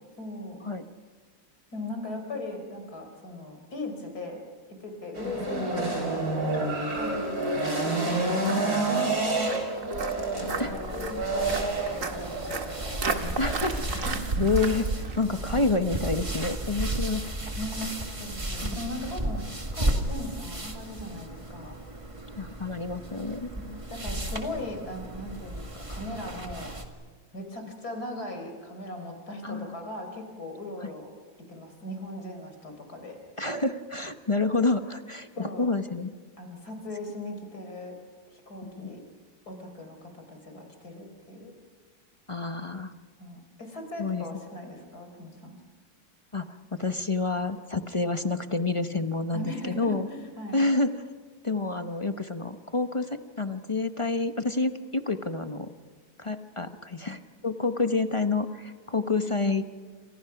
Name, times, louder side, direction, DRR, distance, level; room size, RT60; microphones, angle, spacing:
voice 1, 0.2-0.6 1.7-4.4 4.8-6.3 6.9-7.4 7.8-13.4 14.0-14.3 17.5-17.9 18.2-21.8 23.6-26.7 27.3-31.1 31.5-33.2 35.3-35.7 36.4-38.0 38.3-39.0 39.5-41.5 43.2-45.6 49.3-50.6, left 1 dB, 80° left, 4 dB, 4.9 m, -38 dB
sound 1, 5.1-13.2, right 2 dB, 75° right, 5.1 m, -29 dB
Walk footsteps, 7.0-15.6, right 4 dB, 55° right, 2.1 m, -35 dB
sound 2, 10.2-26.8, right 1 dB, 20° right, 2.0 m, -34 dB
voice 2, 13.4-17.2 18.6-18.7 22.4-23.5 29.4-29.8 30.8-30.9 33.4-36.1 38.6-38.9 42.3-42.9 44.0-44.4 46.3-46.4 46.7-50.1 50.5-50.9 51.4-55.7 56.2-59.6, left 3 dB, 25° left, 8 dB, 0.8 m, -28 dB
29.0 x 27.0 x 5.9 m, 1.5 s
omnidirectional pair, 1.6 m